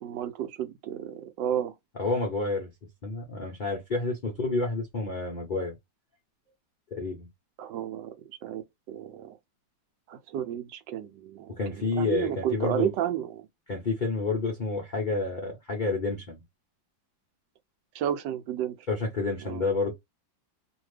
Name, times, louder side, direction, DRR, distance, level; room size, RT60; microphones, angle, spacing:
voice 1, 0.0-1.7 7.6-8.1 8.4-9.4 10.1-11.5 11.8-13.5 17.9-18.8 19.4-19.6, right 10 dB, 75° right, 1.2 m, -32 dB
voice 2, 2.0-2.7 3.0-5.7 6.9-7.3 11.6-12.9 13.7-16.4 18.9-19.9, left 3 dB, 80° left, 0.4 m, -29 dB
2.8 x 2.6 x 3.2 m
omnidirectional pair, 2.1 m